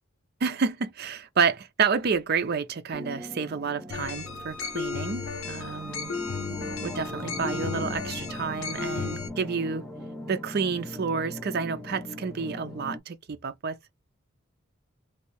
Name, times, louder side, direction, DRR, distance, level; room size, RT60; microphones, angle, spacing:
voice 1, 0.4-6.1 6.8-9.8 10.3-13.8, right 5 dB, 50° right, 0.5 m, -29 dB
sound 1, 2.9-13.0, left 1 dB, ahead, 0.6 m, -39 dB
sound 2, 3.9-9.3, left 5 dB, 80° left, 0.7 m, -34 dB
3.2 x 2.7 x 3.0 m
head